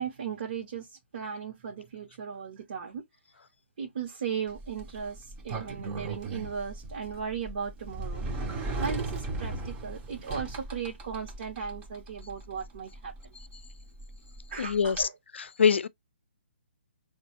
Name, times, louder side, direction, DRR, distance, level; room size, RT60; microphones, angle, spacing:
voice 1, 0.0-3.0 3.8-8.3 8.8-13.1 14.5-15.2, right 6 dB, 50° right, 0.9 m, -37 dB
Sliding door, 4.5-15.0, right 3 dB, 20° right, 0.6 m, -38 dB
voice 2, 14.6-15.1 15.6-15.9, left 6 dB, 80° left, 0.4 m, -23 dB
4.1 x 2.3 x 2.9 m
hypercardioid pair, 150°, 6 cm